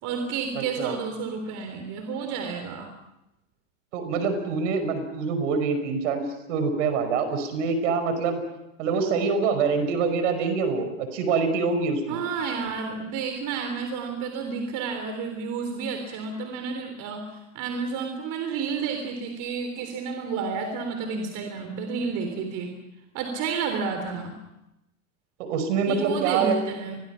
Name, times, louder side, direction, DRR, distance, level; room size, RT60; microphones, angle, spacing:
voice 1, 0.0-2.9 12.1-17.2 17.5-22.7 23.1-24.4 25.9-27.0, right 5 dB, 50° right, 5 dB, 3.8 m, -30 dB
voice 2, 0.5-0.9 3.9-8.4 8.8-12.2 25.4-26.6, right 5 dB, 70° right, 8 dB, 5.4 m, -25 dB
29.5 x 22.0 x 5.8 m, 0.91 s
hypercardioid pair, 90°, 38 cm